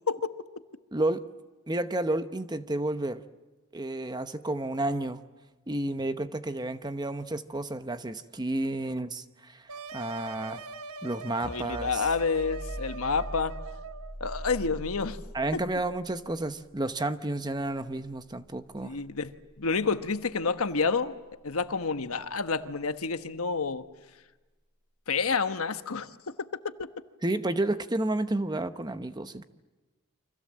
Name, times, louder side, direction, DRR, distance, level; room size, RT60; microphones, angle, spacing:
voice 1, 0.9-1.2 1.7-3.2 3.7-5.2 5.7-10.6 11.0-12.1 15.3-19.0 27.2-29.4, right 2 dB, 20° right, 10 dB, 0.9 m, -31 dB
sound 1, 9.7-14.2, right 5 dB, 90° right, 1.2 m, -42 dB
voice 2, 11.4-13.5 14.2-15.2 18.8-21.1 21.4-23.8 25.1-26.9, left 4 dB, 80° left, 10 dB, 1.3 m, -29 dB
sound 2, 11.4-22.8, equal, ahead, 6.3 m, -44 dB
29.5 x 25.5 x 7.6 m, 1.2 s
head